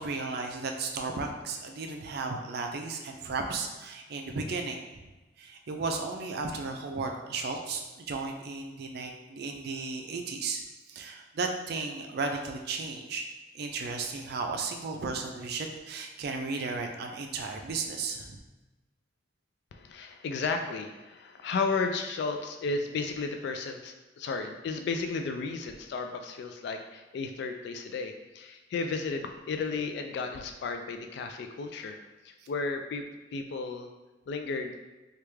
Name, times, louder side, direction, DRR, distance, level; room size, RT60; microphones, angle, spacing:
voice 1, 0.0-4.8 5.4-10.6 10.9-13.2 13.5-18.4, right 4 dB, 60° right, 4 dB, 0.4 m, -34 dB
voice 2, 19.7-33.0 33.3-33.9 34.3-34.8, left 4 dB, 65° left, 5 dB, 0.3 m, -33 dB
3.3 x 2.4 x 3.1 m, 1.2 s
head